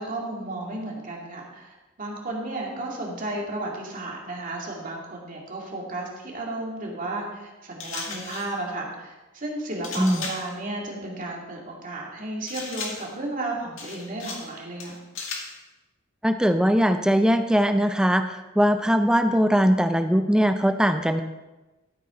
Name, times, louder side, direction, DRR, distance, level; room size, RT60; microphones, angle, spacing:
voice 1, 0.0-15.0, right 2 dB, 40° right, -1 dB, 2.3 m, -33 dB
sound 1, 7.8-8.6 9.8-10.5 12.5-13.2 13.8-14.5 14.8-15.6, left 4 dB, 70° left, 1.8 m, -36 dB
voice 2, 16.2-21.2, equal, 5° right, 8 dB, 0.4 m, -21 dB
13.5 x 8.4 x 3.7 m, 1.1 s
head